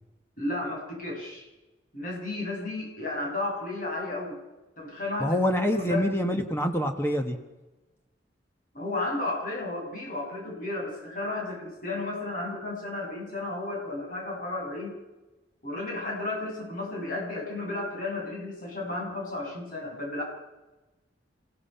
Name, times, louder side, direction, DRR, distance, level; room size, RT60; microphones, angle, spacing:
voice 1, 0.4-1.5 1.9-4.4 4.8-5.4 5.7-6.0 8.7-15.0 15.6-20.2, left 2 dB, 45° left, -1 dB, 7.0 m, -33 dB
voice 2, 5.2-7.4, equal, 15° left, 5 dB, 1.3 m, -26 dB
28.0 x 16.5 x 5.7 m, 1.1 s
head